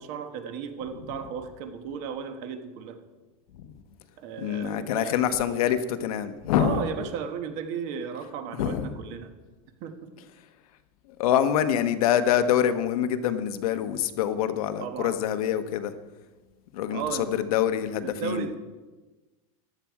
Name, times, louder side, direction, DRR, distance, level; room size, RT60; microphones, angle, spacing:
voice 1, 0.0-3.0 4.2-5.2 6.5-9.3 9.8-10.1 14.8-15.2 16.9-17.3 18.0-18.5, right 7 dB, 40° right, 7 dB, 1.3 m, -35 dB
voice 2, 4.4-6.9 8.6-8.9 11.2-15.9 16.7-18.5, left 9 dB, 70° left, 10 dB, 1.1 m, -25 dB
14.5 x 11.0 x 4.8 m, 1.2 s
supercardioid pair, 175°, 19 cm